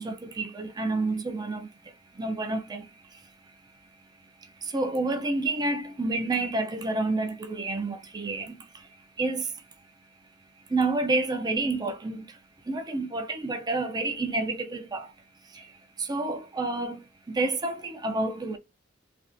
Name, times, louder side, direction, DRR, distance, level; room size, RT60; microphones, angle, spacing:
voice 1, 0.0-1.7 2.2-2.8 4.7-8.5 9.2-9.4 10.7-12.3 12.7-15.0 16.1-17.0 17.3-18.6, right 2 dB, 20° right, 0.4 m, -29 dB
3.3 x 2.4 x 2.6 m
head